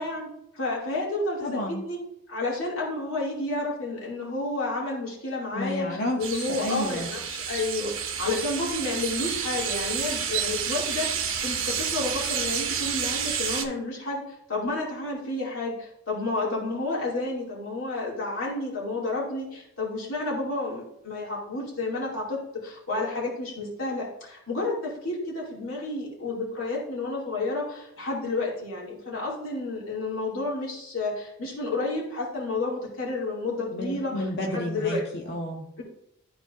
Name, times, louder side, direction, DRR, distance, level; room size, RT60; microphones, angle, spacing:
voice 1, 0.0-1.5 1.8-2.0 2.3-35.0 35.8-35.9, left 2 dB, 80° left, -5 dB, 2.5 m, -31 dB
voice 2, 1.4-1.8 5.5-7.1 33.7-35.6, left 1 dB, 55° left, 0 dB, 0.9 m, -31 dB
sound 1, 6.2-13.6, right 7 dB, 75° right, 0.8 m, -30 dB
12.5 x 4.3 x 2.6 m, 0.78 s
head